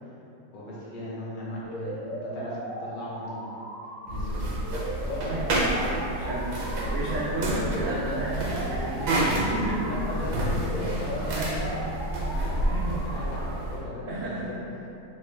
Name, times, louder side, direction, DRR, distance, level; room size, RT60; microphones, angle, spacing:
voice 1, 0.5-3.7 4.1-4.5 5.0-5.4 6.6-6.7 9.8-11.8 12.2-14.6, left 1 dB, 70° left, -6 dB, 1.3 m, -37 dB
sound 1, 1.6-13.6, right 1 dB, 55° right, 0.7 m, -38 dB
sound 2, 4.1-13.8, right 1 dB, 70° right, 1.1 m, -29 dB
voice 2, 6.1-6.6 6.9-9.9 11.4-11.5 12.7-13.0 14.1-14.6, right 2 dB, 90° right, -10 dB, 0.7 m, -32 dB
3.1 x 2.1 x 3.2 m, 2.9 s
omnidirectional pair, 2.0 m